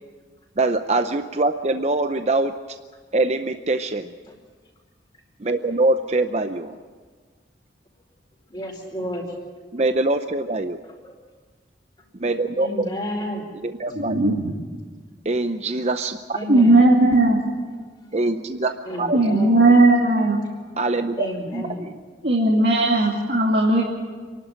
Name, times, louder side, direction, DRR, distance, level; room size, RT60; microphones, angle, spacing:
voice 1, 0.6-2.6 3.1-4.1 5.4-6.8 9.7-10.8 12.2-12.9 13.8-14.1 15.2-16.4 18.1-18.7 19.0-19.2 20.8-21.3 21.5-21.9, right 2 dB, 35° right, 8 dB, 0.6 m, -23 dB
voice 2, 8.5-9.4 10.8-11.1 12.5-13.4 16.3-16.8 18.8-20.3 21.1-21.9, equal, 25° left, -1 dB, 4.8 m, -32 dB
voice 3, 13.9-14.5 16.5-17.4 19.1-20.4 22.2-23.8, right 2 dB, 60° right, -3 dB, 2.5 m, -17 dB
27.0 x 12.0 x 8.9 m, 1.5 s
head